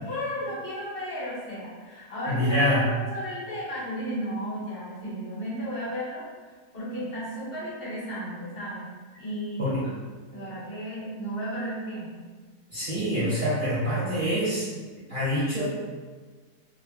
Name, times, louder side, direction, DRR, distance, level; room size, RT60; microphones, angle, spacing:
voice 1, 0.0-2.8 3.1-8.9 9.2-9.8 10.3-12.2, equal, 40° left, -8 dB, 1.1 m, -34 dB
voice 2, 2.3-2.9 9.6-9.8 12.7-14.7 15.1-15.7, equal, 50° right, -11 dB, 0.7 m, -25 dB
2.7 x 2.0 x 3.1 m, 1.4 s
omnidirectional pair, 1.7 m